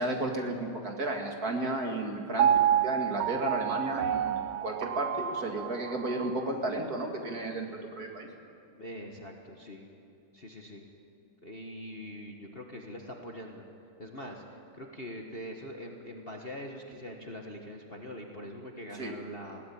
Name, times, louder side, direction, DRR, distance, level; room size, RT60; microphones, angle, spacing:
voice 1, 0.0-2.5 2.8-8.3 18.9-19.1, right 2 dB, 45° right, 2 dB, 2.6 m, -33 dB
Piano, 2.4-6.5 7.0-7.1, right 10 dB, 75° right, 1.6 m, -29 dB
voice 2, 8.8-9.9 10.3-10.8 11.4-13.6 14.0-14.4 14.7-19.6, equal, 30° left, 1 dB, 1.5 m, -43 dB
21.5 x 17.0 x 8.7 m, 2.8 s
omnidirectional pair, 2.4 m